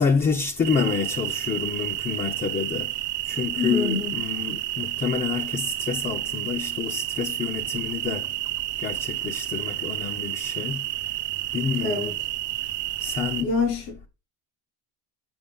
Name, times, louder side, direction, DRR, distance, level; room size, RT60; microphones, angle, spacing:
voice 1, 0.0-2.9 3.3-8.2 8.8-10.8 11.5-12.1 13.0-13.5, left 5 dB, 20° left, 0.6 m, -28 dB
sound 1, 0.6-13.4, right 17 dB, 45° right, 0.7 m, -30 dB
voice 2, 3.5-4.2 11.8-12.1 13.0-14.1, left 4 dB, 85° left, 4.9 m, -27 dB
8.9 x 5.0 x 5.3 m
cardioid pair, 155°, 42 cm